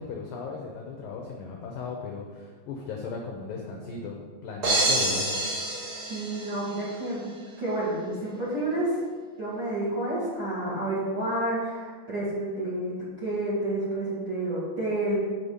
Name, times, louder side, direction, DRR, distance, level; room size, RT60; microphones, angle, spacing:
voice 1, 0.0-5.4, left 4 dB, 80° left, 0 dB, 2.0 m, -37 dB
sound 1, 4.6-6.9, right 1 dB, 65° right, 1.3 m, -27 dB
voice 2, 6.1-7.3 7.6-9.0 9.4-15.2, right 1 dB, 35° right, -8 dB, 2.0 m, -29 dB
7.1 x 6.8 x 5.5 m, 1.5 s
omnidirectional pair, 5.2 m